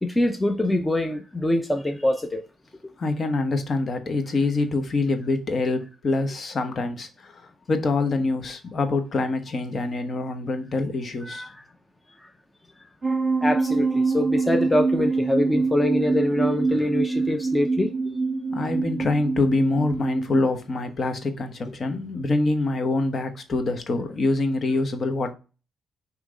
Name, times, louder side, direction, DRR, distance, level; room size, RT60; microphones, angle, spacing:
voice 1, 0.0-2.4 11.2-11.6 12.2-12.3 13.4-17.9, left 1 dB, 10° left, 0.7 m, -24 dB
voice 2, 3.0-11.5 18.5-25.3, left 2 dB, 45° left, 1.1 m, -25 dB
sound 1, 13.0-20.4, right 3 dB, 30° right, 1.3 m, -25 dB
6.0 x 3.1 x 5.0 m
cardioid pair, 90°, 0 cm